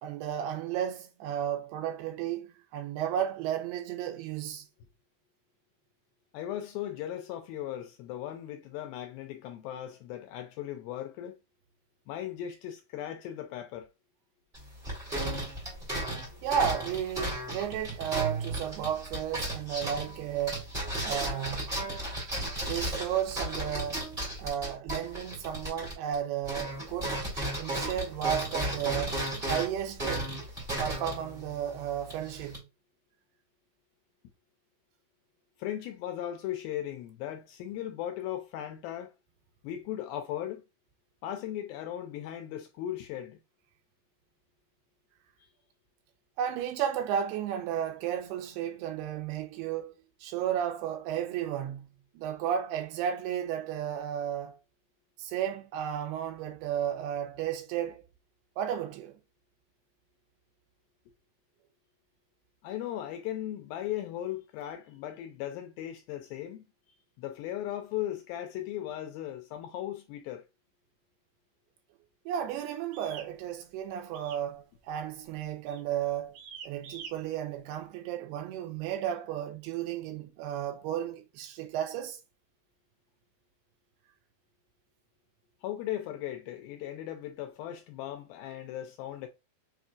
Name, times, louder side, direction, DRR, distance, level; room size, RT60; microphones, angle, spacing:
voice 1, 0.0-4.7 16.4-20.7 21.0-21.7 22.6-24.1 24.4-29.2 29.5-30.3 30.8-32.6 46.4-49.9 50.2-51.9 52.1-54.6 55.2-58.0 58.6-59.2 72.3-76.4 76.6-82.2, right 9 dB, 90° right, 2.8 m, -33 dB
voice 2, 6.3-11.4 12.1-13.9 35.6-39.1 39.6-40.6 41.2-43.4 45.4-45.5 62.6-66.7 67.2-70.4 85.6-89.3, left 12 dB, 80° left, 2.3 m, -37 dB
sound 1, 14.5-26.2 26.4-32.6, right 1 dB, 20° right, 1.4 m, -35 dB
sound 2, 72.9-73.3 74.1-74.5 74.8-75.1 75.7-75.9 76.3-77.1, right 7 dB, 70° right, 2.7 m, -45 dB
6.6 x 2.7 x 2.3 m
omnidirectional pair, 4.5 m